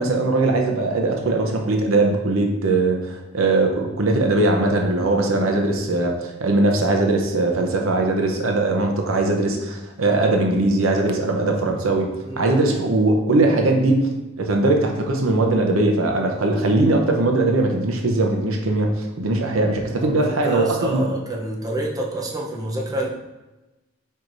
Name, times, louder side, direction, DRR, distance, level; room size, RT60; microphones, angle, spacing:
voice 1, 0.0-12.1 12.4-14.1 14.4-21.0, right 2 dB, 80° right, 2 dB, 0.7 m, -20 dB
voice 2, 12.2-12.6 20.0-23.1, right 1 dB, 20° right, -3 dB, 0.7 m, -28 dB
4.7 x 4.4 x 2.6 m, 1.1 s
head